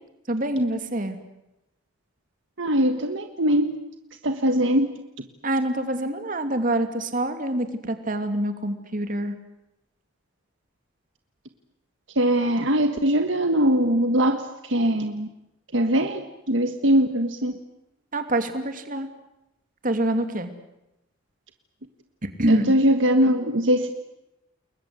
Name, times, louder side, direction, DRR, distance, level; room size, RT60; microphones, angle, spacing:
voice 1, 0.3-1.2 5.4-9.4 18.1-19.1 19.8-20.5 22.2-22.7, right 1 dB, 45° right, 8 dB, 2.8 m, -26 dB
voice 2, 2.6-3.7 4.2-4.9 12.1-15.3 15.7-16.2 16.5-17.5 22.5-23.9, equal, 70° right, 7 dB, 1.6 m, -21 dB
29.5 x 21.5 x 8.1 m, 0.90 s
head